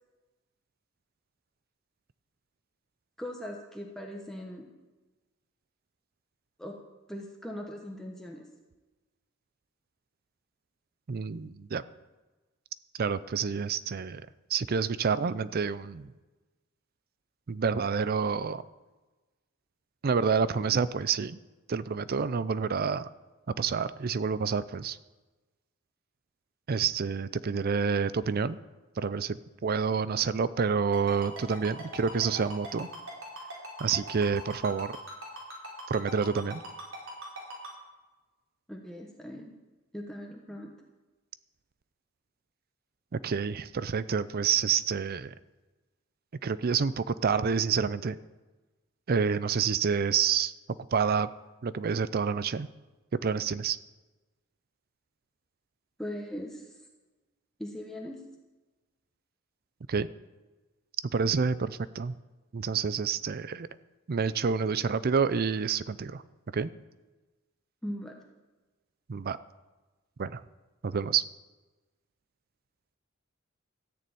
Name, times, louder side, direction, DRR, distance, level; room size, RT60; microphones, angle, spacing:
voice 1, 3.2-4.7 6.6-6.8 7.1-8.5 38.7-39.5 39.9-40.7 56.0-56.8 57.6-58.2 67.8-68.2, equal, 5° left, 0 dB, 1.1 m, -40 dB
voice 2, 11.1-11.8 13.0-14.3 14.5-16.1 17.5-18.6 20.0-21.4 21.7-23.1 23.6-25.0 26.7-28.6 29.0-29.4 29.6-32.9 33.8-35.0 35.9-36.6 43.1-45.3 46.4-48.2 49.1-50.5 50.9-51.3 51.6-52.7 53.2-53.8 59.9-60.1 61.1-62.2 62.5-63.7 64.1-66.2 66.5-66.7 69.1-69.4 70.2-70.4 70.8-71.2, right 6 dB, 50° right, 16 dB, 0.5 m, -28 dB
Ringtone, 30.9-37.7, right 1 dB, 85° right, 4.5 m, -40 dB
14.0 x 6.8 x 9.1 m, 1.2 s
head